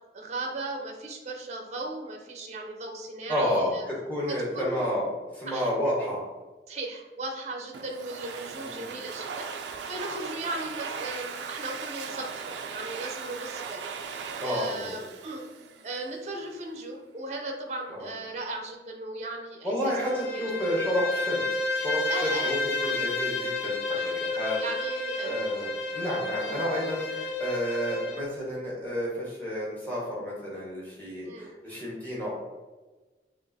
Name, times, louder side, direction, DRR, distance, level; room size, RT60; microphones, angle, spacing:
voice 1, 0.1-3.8 4.3-4.9 5.5-5.7 6.7-15.5 15.8-19.9 20.3-20.4 22.1-22.6 22.9-23.1 23.9-25.4 31.2-31.5, right 2 dB, 40° right, 2 dB, 0.6 m, -37 dB
voice 2, 3.3-5.1 5.3-6.2 8.6-8.9 14.4-14.9 17.9-18.1 19.6-21.4 21.7-24.6 25.2-32.3, equal, 10° left, -5 dB, 1.2 m, -30 dB
Domestic sounds home sounds, 7.7-16.2, right 6 dB, 80° right, 0.4 m, -38 dB
Bowed string instrument, 19.9-28.3, left 2 dB, 90° left, 0.6 m, -31 dB
6.3 x 2.5 x 2.6 m, 1.2 s
head